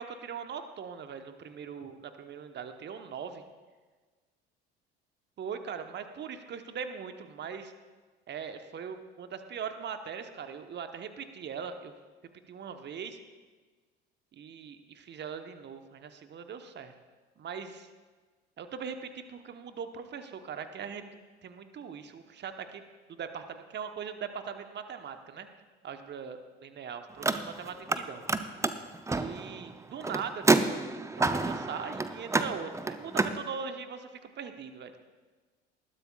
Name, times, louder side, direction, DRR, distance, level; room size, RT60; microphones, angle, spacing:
voice 1, 0.0-3.4 5.4-7.7 8.3-11.9 12.5-13.2 14.3-16.9 17.4-17.9 18.6-21.1 21.4-22.8 23.2-25.5 25.8-28.2 29.1-30.8 31.1-34.9, right 6 dB, 35° right, 8 dB, 1.1 m, -40 dB
Car, 27.1-28.0 28.3-33.4, right 3 dB, 10° right, 0.6 m, -29 dB
20.0 x 13.5 x 2.4 m, 1.4 s
figure-of-eight pair, 60°, 31 cm